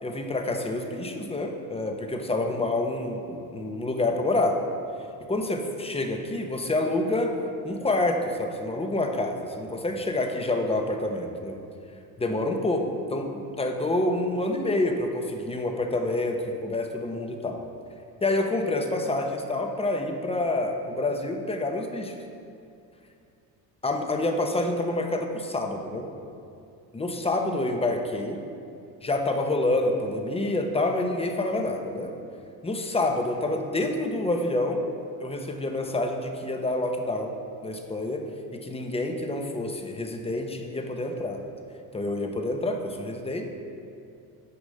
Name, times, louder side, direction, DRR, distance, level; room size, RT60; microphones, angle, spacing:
voice 1, 0.0-4.6 5.3-7.3 7.6-11.6 12.2-12.8 13.1-17.6 18.2-22.1 23.8-26.1 26.9-28.4 29.0-32.1 32.6-34.8 35.2-37.3 37.6-38.2 38.6-41.4 41.9-43.4, left 2 dB, 15° left, 3 dB, 1.0 m, -27 dB
9.8 x 5.1 x 6.4 m, 2.5 s
cardioid pair, 105°, 40 cm